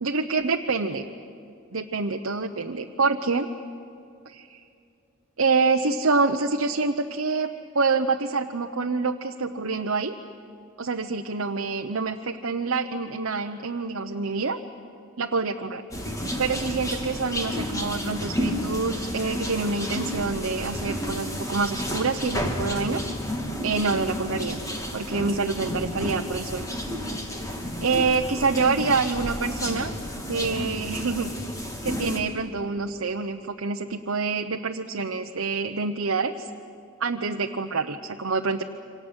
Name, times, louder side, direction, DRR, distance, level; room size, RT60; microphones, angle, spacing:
voice 1, 0.0-1.1 1.7-3.5 4.3-4.6 5.4-10.1 10.8-14.6 15.2-15.8 16.4-23.1 23.6-24.6 24.9-26.7 27.8-29.9 30.3-31.3 31.6-36.5 37.0-38.6, right 4 dB, 65° right, 3 dB, 0.9 m, -26 dB
sound 1, 15.9-32.2, equal, 15° left, 2.9 m, -31 dB
28.0 x 25.5 x 8.1 m, 2.6 s
head